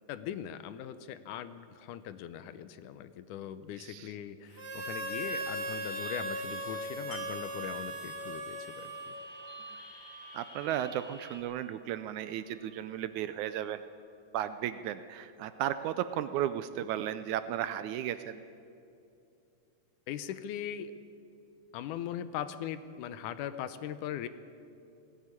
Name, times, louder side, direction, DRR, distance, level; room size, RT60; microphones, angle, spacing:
voice 1, 0.1-9.1 20.1-20.9 21.7-24.3, left 10 dB, 75° left, 13 dB, 2.1 m, -40 dB
voice 2, 3.8-4.1 10.3-13.8 14.3-18.4, right 11 dB, 80° right, 12 dB, 1.8 m, -34 dB
Harmonica, 4.5-9.4, right 1 dB, 30° right, 1.2 m, -38 dB
sound 1, 5.3-11.4, left 2 dB, 45° left, 2.7 m, -53 dB
Wind chime, 7.1-12.9 13.3-13.4, right 4 dB, 60° left, 4.2 m, -48 dB
18.0 x 15.5 x 9.8 m, 2.6 s
omnidirectional pair, 3.8 m